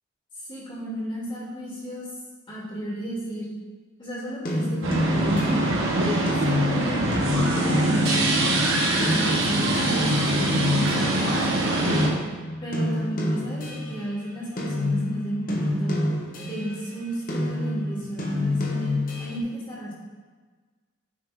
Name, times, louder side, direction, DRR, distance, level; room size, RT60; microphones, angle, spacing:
voice 1, 0.5-2.1 2.5-3.5 4.0-5.7 6.1-8.3 8.7-12.2 12.6-15.9 16.4-18.9 19.2-19.9, right 1 dB, 25° left, -7 dB, 2.2 m, -33 dB
sound 1, 4.5-11.6 11.9-14.2 14.6-16.9 17.3-19.4, left 2 dB, 45° left, 0.8 m, -28 dB
sound 2, 4.8-12.1, right 1 dB, 80° right, 1.3 m, -23 dB
8.6 x 3.7 x 4.8 m, 1.4 s
head